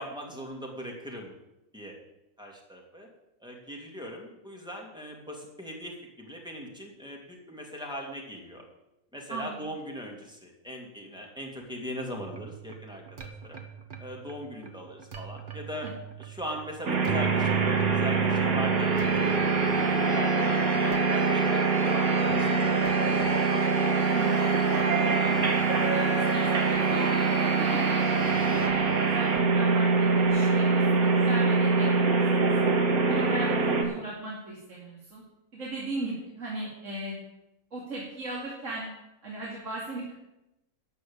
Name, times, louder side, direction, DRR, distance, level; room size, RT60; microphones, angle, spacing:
voice 1, 0.0-1.3 1.7-1.9 2.4-3.1 3.4-8.6 9.1-13.6 14.0-15.9 16.2-22.7 23.0-23.3, equal, 5° right, -1 dB, 2.7 m, -40 dB
voice 2, 9.3-9.6 15.8-15.9 24.1-24.5 25.2-25.6 25.9-32.7 33.1-35.2 35.5-37.2 37.7-38.9 39.2-40.1, right 2 dB, 55° right, -5 dB, 2.9 m, -37 dB
sound 1, 12.2-30.3, right 3 dB, 35° right, 1.4 m, -33 dB
sound 2, 16.9-33.8, right 4 dB, 75° right, 2.0 m, -24 dB
13.0 x 6.4 x 8.9 m, 0.92 s
omnidirectional pair, 1.5 m